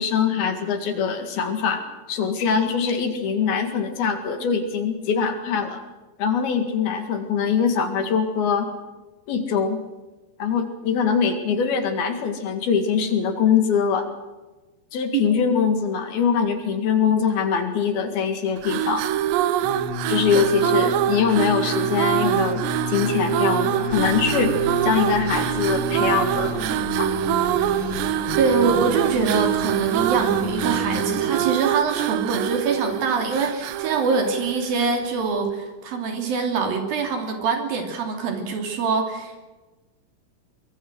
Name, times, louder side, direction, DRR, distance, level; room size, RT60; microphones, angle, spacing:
voice 1, 0.0-5.8 6.2-8.7 9.3-9.8 10.4-14.1 14.9-19.1 20.1-22.6 22.9-24.5 24.8-27.1, left 6 dB, 65° left, 7 dB, 3.7 m, -23 dB
sound 1, 18.6-35.0, right 13 dB, 85° right, 3.0 m, -24 dB
sound 2, 19.6-31.5, left 5 dB, 40° left, 1.7 m, -32 dB
sound 3, 23.9-31.0, right 2 dB, 15° right, 2.1 m, -37 dB
voice 2, 28.4-39.4, right 5 dB, 60° right, 4 dB, 4.5 m, -24 dB
24.0 x 22.0 x 6.2 m, 1.2 s
omnidirectional pair, 4.9 m